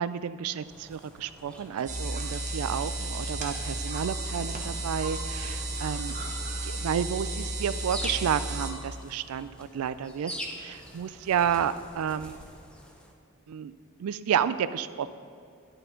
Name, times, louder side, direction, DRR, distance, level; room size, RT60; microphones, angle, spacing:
voice 1, 0.0-6.1 6.6-12.4 13.5-13.7 14.0-15.1, right 8 dB, 85° right, 14 dB, 0.3 m, -31 dB
sound 1, 0.6-13.1, equal, 5° left, 0.6 m, -45 dB
sound 2, 1.9-8.7, right 2 dB, 35° right, 1.0 m, -33 dB
11.0 x 4.5 x 5.1 m, 2.5 s
head